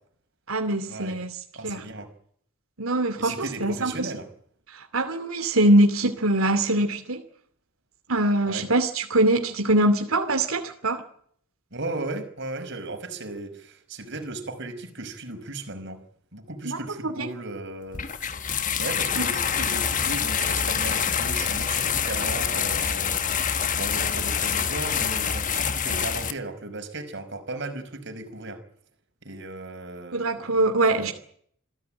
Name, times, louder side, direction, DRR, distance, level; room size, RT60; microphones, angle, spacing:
voice 1, 0.5-1.3 1.6-1.8 2.8-4.1 4.9-7.2 8.1-11.0 16.6-16.8 17.0-17.1 19.2-19.3 30.1-31.1, right 1 dB, 80° right, 2.7 m, -23 dB
voice 2, 1.5-2.1 3.2-4.3 8.4-8.7 11.7-16.0 16.3-18.0 18.8-28.6 29.2-30.6 30.9-31.1, right 2 dB, 55° right, 5.5 m, -36 dB
sound 1, 17.9-26.3, left 7 dB, 35° left, 1.4 m, -26 dB
27.0 x 16.0 x 8.9 m
head